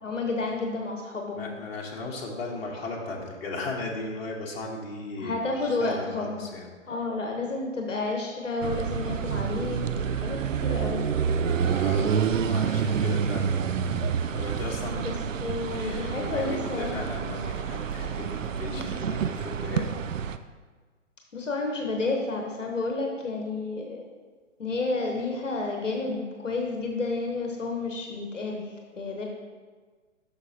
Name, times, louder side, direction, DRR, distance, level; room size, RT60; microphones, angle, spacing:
voice 1, 0.0-1.5 5.2-6.5 6.9-11.2 14.9-15.1 15.4-17.1 18.7-18.8 21.3-24.0 24.6-28.6 29.0-29.3, left 3 dB, 70° left, 1 dB, 1.2 m, -31 dB
voice 2, 1.3-6.7 11.7-12.2 12.5-13.5 14.1-15.1 15.6-19.9, left 2 dB, 50° left, -1 dB, 1.3 m, -36 dB
sound 1, 8.6-20.4, right 7 dB, 80° right, 0.5 m, -28 dB
8.1 x 6.3 x 2.9 m, 1.4 s
figure-of-eight pair, 135°, 38 cm